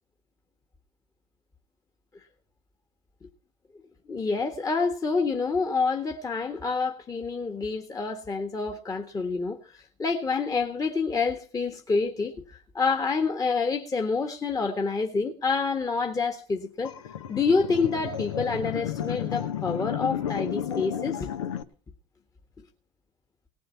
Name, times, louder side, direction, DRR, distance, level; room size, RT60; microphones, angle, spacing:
voice 1, 4.1-16.9 17.3-21.3, left 4 dB, 25° left, 1.6 m, -27 dB
sound 1, 16.8-21.6, left 9 dB, 80° left, 1.0 m, -32 dB
18.5 x 7.8 x 5.8 m
hypercardioid pair, 75°, 16 cm